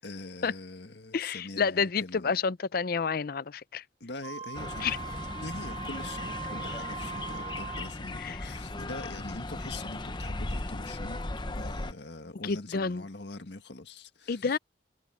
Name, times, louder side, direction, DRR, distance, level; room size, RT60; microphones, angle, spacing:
voice 1, 0.0-2.4 4.0-11.2 11.5-14.6, left 2 dB, 70° left, 1.8 m, -43 dB
voice 2, 1.1-3.8 4.8-5.0 8.2-8.5 12.4-13.0 14.3-14.6, left 5 dB, 55° left, 0.5 m, -29 dB
Wind instrument woodwind instrument, 4.2-7.9, right 6 dB, 35° right, 1.8 m, -40 dB
sound 1, 4.5-11.9, left 2 dB, 25° left, 0.8 m, -37 dB
head